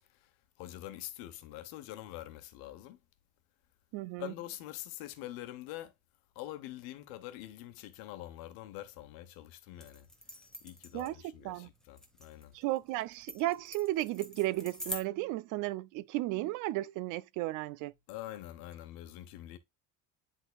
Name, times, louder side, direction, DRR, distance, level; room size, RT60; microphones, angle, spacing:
voice 1, 0.6-3.0 4.2-5.9 6.3-10.1 10.6-12.5 18.1-19.6, left 14 dB, 75° left, 1.2 m, -45 dB
voice 2, 3.9-4.3 10.9-11.7 12.5-17.9, right 17 dB, 60° right, 0.5 m, -34 dB
sound 1, 9.8-15.0, left 1 dB, ahead, 1.1 m, -45 dB
10.5 x 3.9 x 2.3 m
cardioid pair, 165°, 36 cm